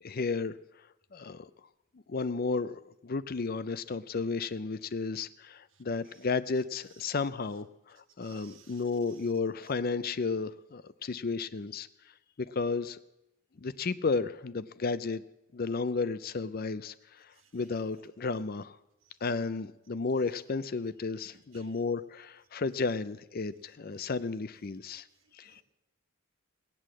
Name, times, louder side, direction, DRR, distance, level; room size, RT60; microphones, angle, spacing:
voice 1, 0.0-0.6 1.1-1.5 2.1-11.9 12.4-13.0 13.6-15.2 15.5-18.8 19.2-25.1 25.3-25.6, left 4 dB, 45° left, 15 dB, 0.5 m, -33 dB
voice 2, 8.2-8.8 9.1-9.2 21.5-21.6 25.4-25.6, right 9 dB, 65° right, 6 dB, 1.5 m, -58 dB
19.0 x 8.4 x 7.6 m, 0.94 s
head